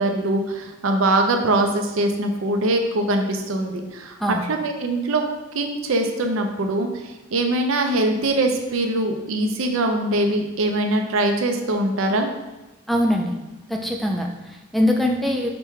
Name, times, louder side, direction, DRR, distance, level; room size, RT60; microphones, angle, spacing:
voice 1, 0.0-5.2 5.5-12.3, right 2 dB, 75° right, 4 dB, 0.5 m, -22 dB
voice 2, 12.9-13.3 13.7-15.5, left 1 dB, ahead, 1 dB, 0.3 m, -22 dB
5.1 x 2.2 x 4.5 m, 1.1 s
head